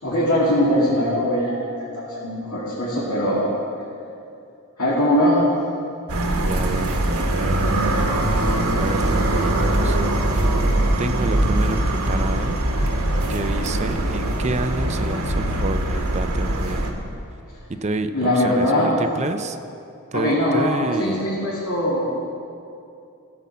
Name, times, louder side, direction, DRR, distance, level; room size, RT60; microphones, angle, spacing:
voice 1, 0.0-3.5 4.8-5.5 18.1-18.9 20.1-22.0, left 1 dB, 75° left, -8 dB, 2.6 m, -21 dB
sound 1, 6.1-16.9, right 1 dB, 85° right, 1.4 m, -22 dB
voice 2, 6.4-7.0 7.4-8.2 8.8-10.0 11.0-12.6 13.3-16.9 17.7-19.6 20.1-21.3, right 2 dB, 30° right, 9 dB, 0.5 m, -29 dB
16.0 x 5.6 x 7.3 m, 2.6 s
head